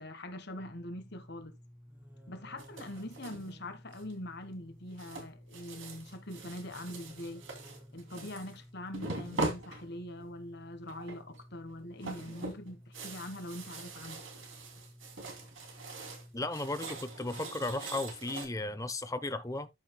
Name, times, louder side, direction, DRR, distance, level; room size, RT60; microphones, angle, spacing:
voice 1, 0.0-1.6 2.3-7.5 7.9-14.2, left 1 dB, 50° left, 1.3 m, -43 dB
sound 1, 0.6-17.2, equal, 10° right, 1.6 m, -55 dB
sound 2, 2.6-3.5 3.9-4.4 5.0-8.6 8.9-10.3 10.9-11.4 11.7-16.3 16.5-18.5, right 2 dB, 60° right, 2.7 m, -42 dB
voice 2, 16.3-19.7, left 2 dB, 15° left, 0.7 m, -35 dB
13.5 x 5.9 x 2.2 m
head